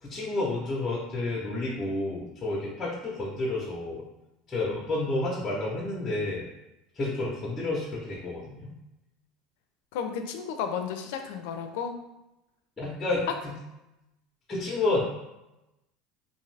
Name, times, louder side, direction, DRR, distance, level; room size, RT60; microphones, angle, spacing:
voice 1, 0.0-4.1 4.5-6.5 7.0-8.7 12.8-13.5 14.5-15.0, left 2 dB, 15° left, -5 dB, 0.6 m, -30 dB
voice 2, 9.9-11.9, left 7 dB, 75° left, 6 dB, 0.4 m, -33 dB
2.6 x 2.4 x 3.2 m, 0.94 s
supercardioid pair, 130°, 0 cm